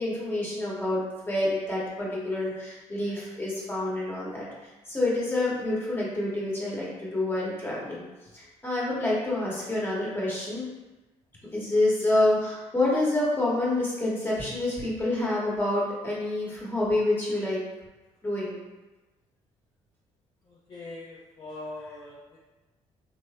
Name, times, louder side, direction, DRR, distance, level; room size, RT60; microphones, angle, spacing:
voice 1, 0.0-8.0 8.3-10.7 11.5-17.6 18.2-18.6, left 2 dB, 15° left, -6 dB, 1.2 m, -27 dB
voice 2, 20.5-22.4, left 2 dB, 35° left, -6 dB, 0.6 m, -42 dB
3.2 x 2.0 x 2.9 m, 1.1 s
supercardioid pair, 75°, 13 cm